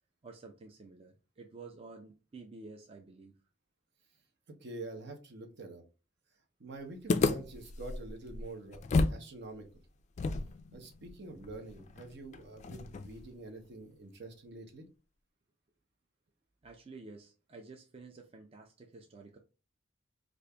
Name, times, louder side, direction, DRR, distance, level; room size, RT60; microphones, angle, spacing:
voice 1, 0.2-3.4 16.6-19.4, right 3 dB, 30° right, 1 dB, 0.4 m, -51 dB
voice 2, 4.6-5.8 6.6-9.7 10.7-14.9, right 2 dB, 60° right, 4 dB, 0.8 m, -46 dB
sound 1, 7.1-9.3 9.5-9.6 10.2-13.3, left 3 dB, 35° left, 0.3 m, -33 dB
5.0 x 2.5 x 2.2 m, 0.33 s
head